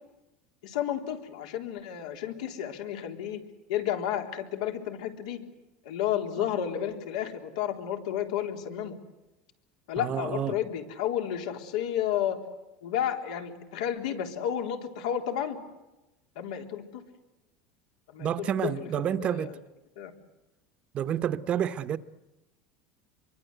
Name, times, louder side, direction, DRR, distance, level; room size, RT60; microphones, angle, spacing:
voice 1, 0.6-3.4 3.7-5.4 5.9-8.9 9.9-12.4 12.8-15.6 16.4-17.0 18.1-19.5 20.0-20.1, left 10 dB, 90° left, 3.8 m, -32 dB
voice 2, 10.0-10.6 18.2-19.6 20.9-22.0, right 9 dB, 30° right, 0.9 m, -29 dB
26.0 x 23.5 x 8.1 m
supercardioid pair, 155°, 4 cm